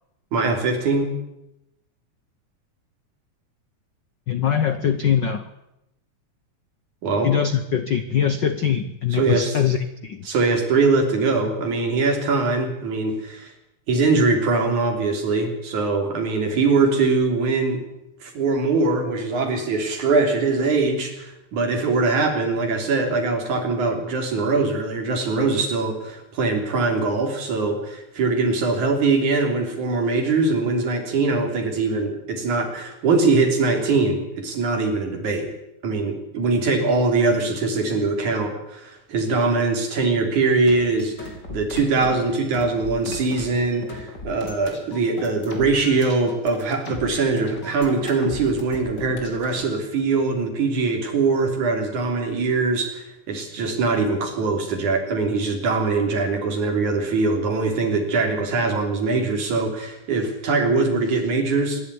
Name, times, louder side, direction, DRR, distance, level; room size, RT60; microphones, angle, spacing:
voice 1, 0.3-1.1 7.0-7.3 9.1-9.6 10.3-13.5 13.9-17.8 18.2-35.5 35.8-61.8, right 3 dB, 70° right, 3 dB, 4.7 m, -22 dB
voice 2, 4.3-5.5 7.2-10.3, left 8 dB, 70° left, 11 dB, 1.0 m, -22 dB
sound 1, 40.6-49.6, left 2 dB, 35° left, 3.9 m, -38 dB
25.0 x 11.5 x 9.7 m, 0.88 s
omnidirectional pair, 3.5 m